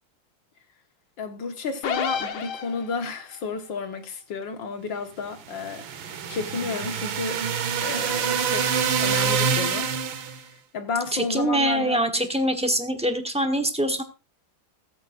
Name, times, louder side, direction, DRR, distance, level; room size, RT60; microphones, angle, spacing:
voice 1, 1.2-5.8 6.3-7.4 7.8-8.7 9.0-9.9 10.7-12.0, left 4 dB, 65° left, 2.2 m, -31 dB
sound 1, 1.8-3.2, left 7 dB, 85° left, 2.1 m, -29 dB
sound 2, 5.5-10.4, right 6 dB, 75° right, 2.0 m, -26 dB
voice 2, 11.1-14.0, right 1 dB, 5° right, 0.6 m, -24 dB
15.0 x 13.5 x 2.5 m
omnidirectional pair, 2.2 m